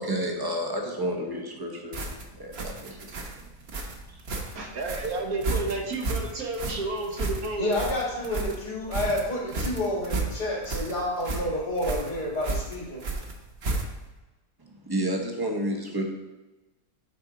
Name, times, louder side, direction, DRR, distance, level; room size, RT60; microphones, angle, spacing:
voice 1, 0.0-2.0 2.4-3.2 4.1-4.2 14.7-16.0, right 1 dB, 20° right, 0.7 m, -30 dB
sound 1, 1.9-14.2, right 3 dB, 45° right, 1.0 m, -33 dB
voice 2, 4.5-7.7, right 2 dB, 70° right, 1.5 m, -31 dB
voice 3, 7.6-13.0, left 1 dB, 85° left, 3.0 m, -29 dB
9.4 x 4.4 x 3.8 m
omnidirectional pair, 1.7 m